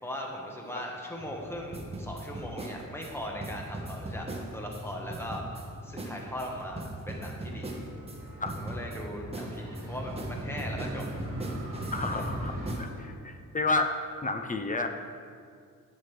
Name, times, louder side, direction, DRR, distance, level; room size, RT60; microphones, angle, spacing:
voice 1, 0.0-4.3 4.5-7.8 8.5-11.0 12.1-12.2, equal, 5° left, -1 dB, 1.2 m, -39 dB
Motorcycle, 1.2-12.7, equal, 55° right, 1.7 m, -41 dB
sound 1, 1.7-4.8 5.1-5.7 6.0-6.1 6.4-8.2 8.5-9.0 9.3-12.3 12.7-12.8, right 2 dB, 20° right, 1.0 m, -39 dB
sound 2, 7.8-13.2, left 1 dB, 60° left, 2.1 m, -53 dB
voice 2, 11.9-12.5 12.8-13.9 14.2-14.9, left 3 dB, 25° left, 6 dB, 0.5 m, -30 dB
11.0 x 7.4 x 3.3 m, 2.1 s
wide cardioid pair, 130°, 33 cm